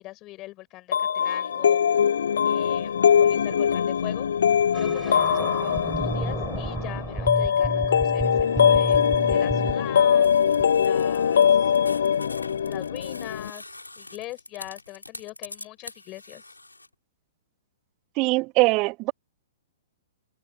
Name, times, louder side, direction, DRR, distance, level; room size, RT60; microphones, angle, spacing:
voice 1, 0.0-1.8 2.4-4.3 4.7-10.3 10.7-11.7 12.7-16.4, left 18 dB, 30° left, 6.0 m, -41 dB
sound 1, 0.9-13.5, left 7 dB, 60° left, 1.3 m, -22 dB
sound 2, 4.7-10.0 10.6-10.7, right 3 dB, 5° right, 7.6 m, -31 dB
sound 3, 10.2-16.9, left 2 dB, 85° left, 7.2 m, -44 dB
voice 2, 18.2-19.1, right 24 dB, 35° right, 2.4 m, -22 dB
figure-of-eight pair, 115°, 0 cm